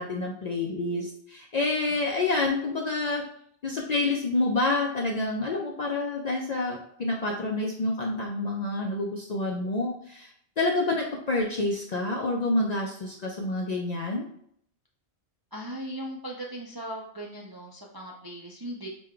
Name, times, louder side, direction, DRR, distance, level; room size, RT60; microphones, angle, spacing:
voice 1, 0.0-3.2 3.6-10.3 10.6-14.3, left 2 dB, 55° left, 0 dB, 0.5 m, -28 dB
voice 2, 15.5-18.9, right 1 dB, 35° right, -2 dB, 0.3 m, -38 dB
5.0 x 2.2 x 3.7 m, 0.66 s
omnidirectional pair, 1.2 m